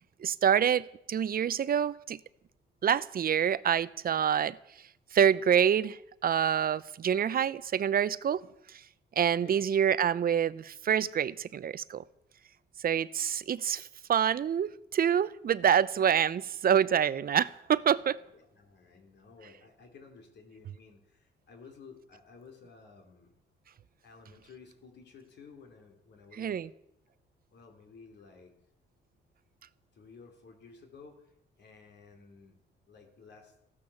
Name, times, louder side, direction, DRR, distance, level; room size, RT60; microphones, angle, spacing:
voice 1, 0.2-2.2 2.8-4.6 5.1-6.0 6.2-8.4 9.2-12.0 12.8-18.2 26.4-26.7, right 8 dB, 50° right, 0.7 m, -26 dB
voice 2, 9.3-9.6 18.3-23.3 24.0-26.6 27.1-27.2 27.5-28.5 29.9-31.3 31.6-32.6 32.9-33.5, left 5 dB, 60° left, 3.5 m, -54 dB
14.5 x 12.0 x 7.2 m
cardioid pair, 90°, 20 cm